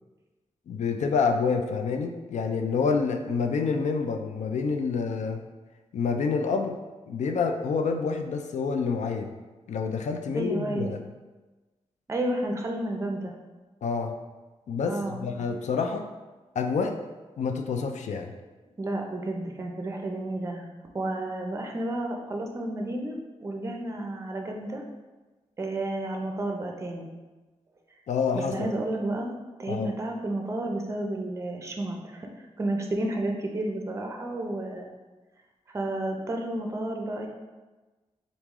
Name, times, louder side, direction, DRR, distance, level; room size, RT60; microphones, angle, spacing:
voice 1, 0.7-5.4 5.9-6.8 7.1-9.3 9.7-11.0 13.8-14.2 14.7-16.1 16.6-17.0 17.4-18.3 28.1-28.7 29.7-29.9, left 5 dB, 90° left, 5 dB, 0.4 m, -27 dB
voice 2, 10.3-11.0 12.1-13.3 14.8-15.3 18.8-20.7 20.9-24.8 25.6-27.1 28.3-29.3 29.6-32.3 32.6-34.9 35.7-37.3, right 1 dB, 25° right, 2 dB, 0.4 m, -31 dB
3.8 x 3.0 x 3.6 m, 1.2 s
wide cardioid pair, 160°, 12 cm